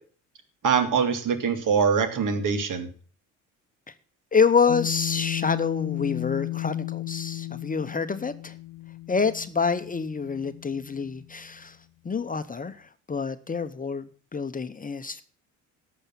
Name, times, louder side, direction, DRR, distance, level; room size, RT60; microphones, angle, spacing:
voice 1, 0.6-2.9, right 6 dB, 60° right, 9 dB, 2.3 m, -23 dB
voice 2, 4.3-8.6 9.1-11.8 12.0-15.2, left 5 dB, 25° left, 11 dB, 0.9 m, -27 dB
sound 1, 4.7-11.4, left 17 dB, 65° left, 0.8 m, -34 dB
12.0 x 7.2 x 7.3 m, 0.42 s
hypercardioid pair, 60°, 36 cm